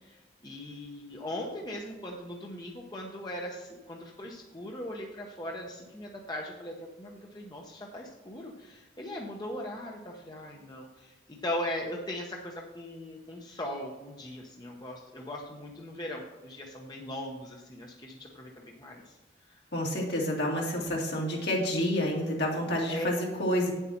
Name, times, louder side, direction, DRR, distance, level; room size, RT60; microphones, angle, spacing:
voice 1, 0.0-18.5 18.8-19.1 19.5-19.6 22.9-23.1, left 1 dB, 20° left, 0 dB, 0.9 m, -39 dB
voice 2, 19.7-23.7, left 1 dB, 65° left, -2 dB, 2.6 m, -29 dB
9.0 x 8.1 x 4.4 m, 1.2 s
head